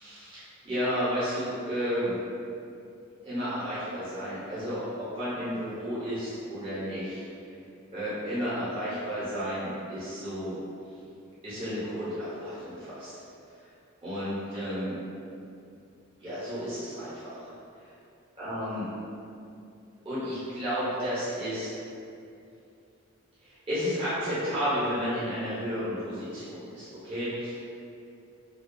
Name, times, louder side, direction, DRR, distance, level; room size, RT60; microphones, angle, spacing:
voice 1, 0.0-2.2 3.2-7.2 7.9-10.5 11.4-13.1 14.0-15.0 16.2-17.5 18.4-18.9 20.0-21.8 23.4-27.7, equal, 25° right, -12 dB, 0.6 m, -32 dB
2.3 x 2.2 x 2.5 m, 2.5 s
head